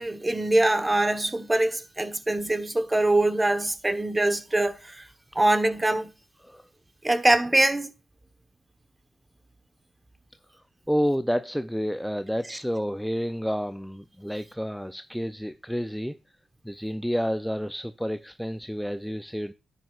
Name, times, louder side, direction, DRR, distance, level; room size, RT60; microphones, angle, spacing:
voice 1, 0.0-5.1 5.3-6.1 7.0-7.9 12.5-12.6, right 1 dB, 15° right, 1.1 m, -23 dB
voice 2, 10.9-16.2 16.6-19.5, equal, ahead, 0.5 m, -29 dB
10.5 x 9.2 x 2.4 m
cardioid pair, 75°, 0 cm